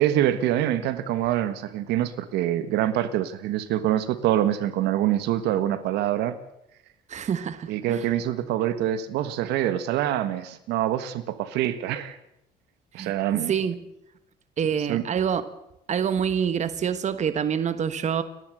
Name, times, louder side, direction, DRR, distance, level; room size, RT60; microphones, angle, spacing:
voice 1, 0.0-6.4 7.7-12.2 12.9-13.5 14.8-15.0, right 12 dB, 85° right, 12 dB, 1.6 m, -25 dB
voice 2, 7.1-8.1 13.0-13.1 13.5-13.8 14.6-15.4 15.9-18.2, right 7 dB, 45° right, 12 dB, 1.4 m, -26 dB
30.0 x 11.5 x 8.0 m, 0.81 s
cardioid pair, 110°, 17 cm